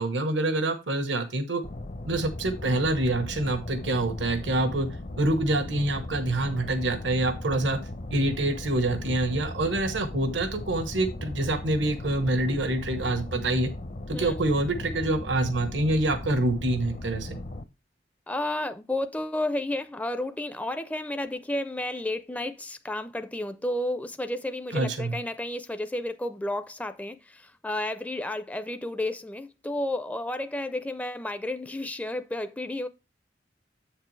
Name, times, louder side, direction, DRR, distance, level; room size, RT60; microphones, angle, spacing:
voice 1, 0.0-1.6 2.0-4.9 5.2-7.8 8.1-13.7 14.1-17.4 24.7-25.1, right 2 dB, 90° right, 1.1 m, -26 dB
sound 1, 1.6-17.6, left 1 dB, 50° left, 0.7 m, -37 dB
voice 2, 18.3-32.9, left 1 dB, 10° left, 0.4 m, -32 dB
7.9 x 6.7 x 3.1 m
head